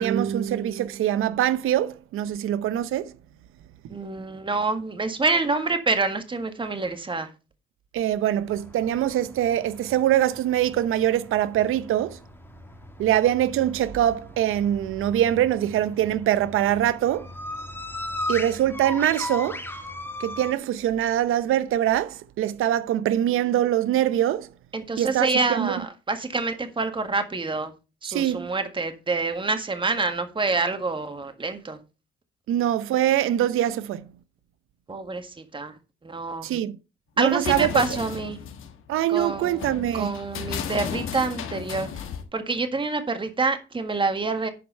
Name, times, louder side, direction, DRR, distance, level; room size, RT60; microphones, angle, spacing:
voice 1, 0.0-3.1 7.9-12.2 13.0-17.3 18.3-19.6 20.2-24.5 25.0-25.8 28.1-28.5 32.5-34.0 36.4-36.8 37.2-37.8 38.9-40.1, right 12 dB, 80° right, 0.8 m, -23 dB
voice 2, 3.9-7.3 24.7-27.7 28.0-31.8 34.9-35.7 36.0-36.5 37.2-38.4 39.1-39.7 39.9-41.9 42.3-44.5, right 3 dB, 25° right, 1.7 m, -27 dB
sound 1, 8.5-20.5, left 2 dB, 10° left, 1.6 m, -38 dB
sound 2, 37.4-42.2, left 7 dB, 75° left, 1.6 m, -34 dB
11.0 x 4.8 x 5.4 m
cardioid pair, 100°, 21 cm